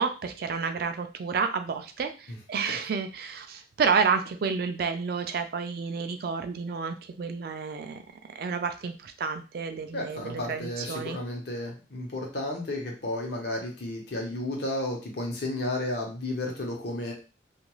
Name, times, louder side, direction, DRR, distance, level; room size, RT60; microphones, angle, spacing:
voice 1, 0.0-8.0 8.4-11.2, right 5 dB, 55° right, 8 dB, 0.3 m, -30 dB
voice 2, 9.9-17.1, left 1 dB, 60° left, 0 dB, 0.8 m, -33 dB
2.4 x 2.3 x 3.0 m, 0.33 s
head